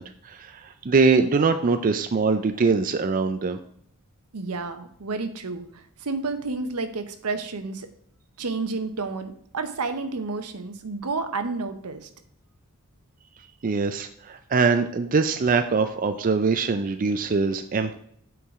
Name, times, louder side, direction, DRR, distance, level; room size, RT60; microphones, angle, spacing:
voice 1, 0.0-3.6 13.6-18.0, right 4 dB, 40° right, 8 dB, 0.4 m, -23 dB
voice 2, 4.3-7.9 8.4-12.1, right 3 dB, 85° right, 9 dB, 0.9 m, -30 dB
8.5 x 4.7 x 3.7 m, 0.67 s
head